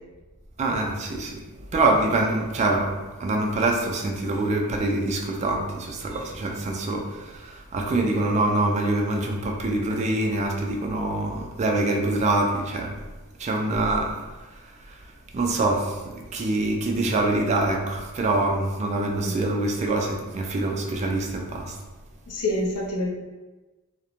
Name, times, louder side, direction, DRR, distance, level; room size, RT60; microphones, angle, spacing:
voice 1, 0.6-13.0 13.4-21.8, right 2 dB, 30° right, 1 dB, 0.3 m, -25 dB
voice 2, 19.0-19.4 22.3-23.1, left 1 dB, 85° left, -1 dB, 0.5 m, -28 dB
2.5 x 2.0 x 2.9 m, 1.2 s
head